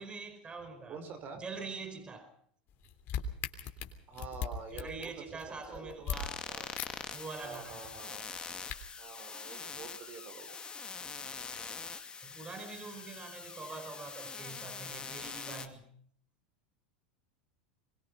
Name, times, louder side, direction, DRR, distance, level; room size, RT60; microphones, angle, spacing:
voice 1, 0.0-1.0 1.3-2.3 4.7-6.4 7.1-8.0 12.2-15.8, right 4 dB, 20° right, 5.0 m, -44 dB
voice 2, 0.9-1.4 4.1-6.1 6.5-6.7 7.4-8.3 9.0-10.5, right 5 dB, 40° right, 5.0 m, -47 dB
sound 1, 2.7-6.2 6.8-6.9 7.2-7.6 8.2-8.7, left 7 dB, 45° left, 3.3 m, -39 dB
sound 2, 6.1-15.7, left 5 dB, 20° left, 2.4 m, -44 dB
23.5 x 21.5 x 5.6 m
hypercardioid pair, 105°, 5 cm